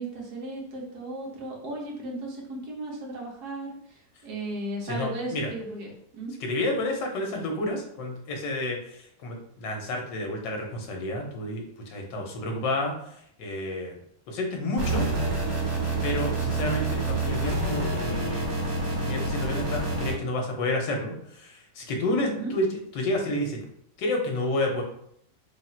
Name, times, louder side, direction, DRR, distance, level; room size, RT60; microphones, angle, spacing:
voice 1, 0.0-6.3 22.2-22.5, right 2 dB, 65° right, -2 dB, 1.5 m, -36 dB
voice 2, 4.8-5.5 6.4-12.9 13.4-14.0 14.3-15.0 15.3-15.5 16.0-18.5 19.0-23.6 24.0-24.8, left 1 dB, 90° left, 1 dB, 1.5 m, -30 dB
sound 1, 14.8-20.1, right 2 dB, 80° right, 1.8 m, -27 dB
3.7 x 2.4 x 4.2 m, 0.70 s
omnidirectional pair, 1.9 m